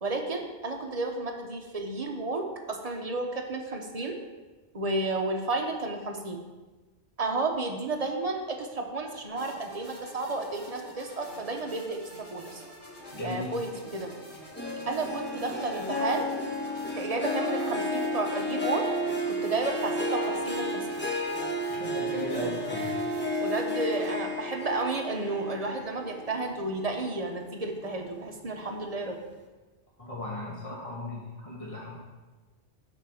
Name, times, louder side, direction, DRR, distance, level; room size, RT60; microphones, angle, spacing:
voice 1, 0.0-4.2 4.7-6.4 7.2-12.0 12.3-12.6 13.2-14.1 14.9-16.3 17.0-18.9 19.3-20.8 22.4-22.5 23.4-29.2, right 3 dB, 35° right, 2 dB, 1.0 m, -32 dB
sound 1, 9.3-24.1, equal, 65° left, 3.5 m, -47 dB
voice 2, 13.1-13.5 21.7-23.1 30.0-32.0, left 1 dB, 30° left, -6 dB, 2.2 m, -36 dB
Harp, 14.6-27.3 27.7-28.1 28.6-28.7, equal, 10° left, 0.8 m, -32 dB
6.4 x 5.8 x 6.4 m, 1.2 s
omnidirectional pair, 1.2 m